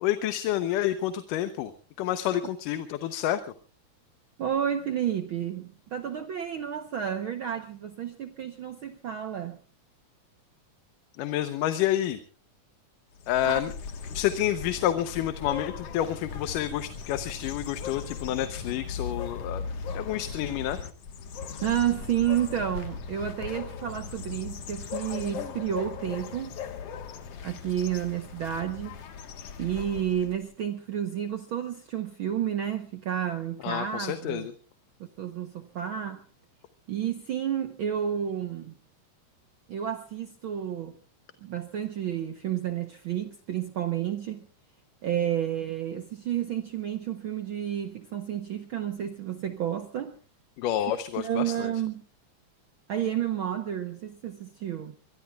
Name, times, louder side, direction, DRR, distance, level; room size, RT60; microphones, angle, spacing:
voice 1, 0.0-1.7 2.0-3.4 11.2-12.2 13.3-13.7 14.1-19.6 19.9-20.8 33.6-34.5 50.6-51.7, left 12 dB, 90° left, 2.5 m, -29 dB
voice 2, 4.4-9.6 13.4-13.7 21.6-26.6 27.4-29.0 29.6-34.5 35.0-36.2 36.9-38.7 39.7-41.0 41.4-44.5 45.0-50.2 51.2-52.0 52.9-54.9, right 10 dB, 85° right, 1.1 m, -31 dB
sound 1, 13.2-30.5, left 6 dB, 55° left, 2.2 m, -38 dB
23.5 x 23.0 x 2.3 m
omnidirectional pair, 3.7 m